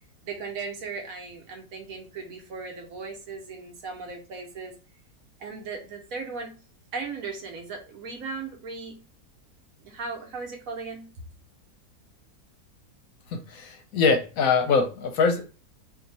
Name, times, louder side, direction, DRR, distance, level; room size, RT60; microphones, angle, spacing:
voice 1, 0.2-4.7 5.4-6.6 6.9-9.0 9.8-11.1, right 4 dB, 65° right, 3 dB, 1.1 m, -37 dB
voice 2, 13.3-15.5, left 5 dB, 70° left, 5 dB, 1.0 m, -23 dB
2.8 x 2.6 x 3.9 m, 0.33 s
omnidirectional pair, 1.7 m